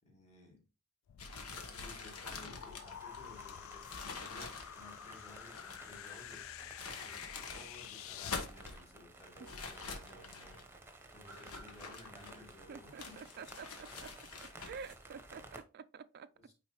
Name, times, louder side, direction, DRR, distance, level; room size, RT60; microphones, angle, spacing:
voice 1, 0.0-0.6 1.5-6.4 7.0-10.6 11.1-13.3 16.3-16.5, left 1 dB, 30° left, 2.6 m, -56 dB
sound 1, 1.1-8.5, left 11 dB, 65° left, 0.3 m, -49 dB
sound 2, 1.2-5.9 6.6-7.7 8.1-8.8 9.4-10.6 11.3-12.6 13.0-15.0, left 4 dB, 90° left, 1.2 m, -46 dB
sound 3, 2.6-15.6, right 2 dB, 10° right, 0.9 m, -55 dB
voice 2, 12.7-14.1 14.6-16.3, right 6 dB, 45° right, 0.4 m, -49 dB
9.0 x 3.9 x 3.1 m
head